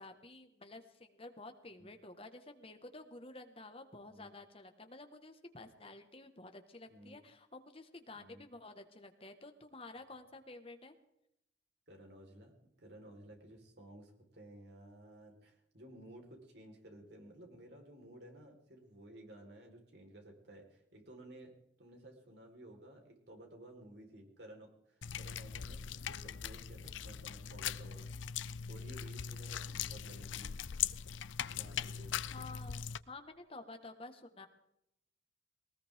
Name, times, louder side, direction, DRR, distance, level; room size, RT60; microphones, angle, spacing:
voice 1, 0.0-10.9 32.3-34.5, left 2 dB, 30° left, 7 dB, 1.7 m, -51 dB
voice 2, 6.9-7.2 8.1-8.4 11.9-12.5 12.8-28.0 28.7-30.5 31.5-32.2, right 1 dB, 65° right, 2 dB, 4.6 m, -55 dB
sound 1, 25.0-33.0, left 8 dB, 85° left, 0.6 m, -40 dB
19.5 x 19.5 x 3.7 m, 0.80 s
head